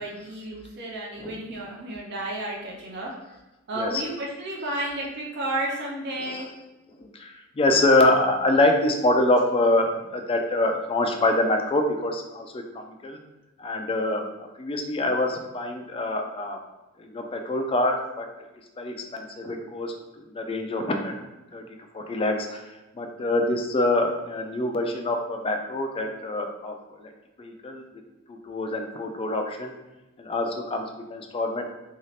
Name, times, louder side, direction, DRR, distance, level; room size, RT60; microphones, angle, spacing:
voice 1, 0.0-3.1 3.7-6.5, right 1 dB, 50° right, -3 dB, 0.5 m, -32 dB
voice 2, 7.0-13.2 13.6-14.2 14.6-16.6 17.0-18.3 18.8-19.9 20.3-21.2 21.5-21.6 21.9-22.6 23.0-26.7 27.0-27.1 27.4-27.8 28.3-29.7 30.2-30.9 31.1-31.7, left 2 dB, 25° left, 4 dB, 0.3 m, -25 dB
2.7 x 2.4 x 3.2 m, 1.0 s
head